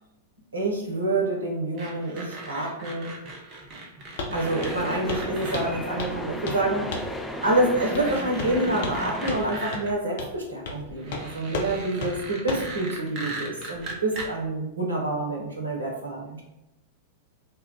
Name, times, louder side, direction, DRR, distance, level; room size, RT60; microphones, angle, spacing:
voice 1, 0.5-3.1 4.3-6.9 7.4-16.4, right 2 dB, 75° right, -1 dB, 0.7 m, -27 dB
sound 1, 1.8-5.6 6.8-6.9 7.4-9.9 10.9-14.3, right 2 dB, 35° right, 0.7 m, -38 dB
Walk footsteps, 4.2-4.4 4.6-4.8 5.1-5.3 5.5-6.2 6.5-6.6 6.9-7.2 7.9-8.1 8.4-9.0 9.3-9.4 9.7-9.8 10.2-10.3 10.7-10.8 11.1-11.2 11.5-11.7 12.0-12.1 12.5-12.7, left 3 dB, 55° left, 0.5 m, -33 dB
sound 2, 4.4-9.4, equal, 5° left, 0.5 m, -35 dB
2.2 x 2.1 x 3.8 m, 0.93 s
figure-of-eight pair, 95°, 0 cm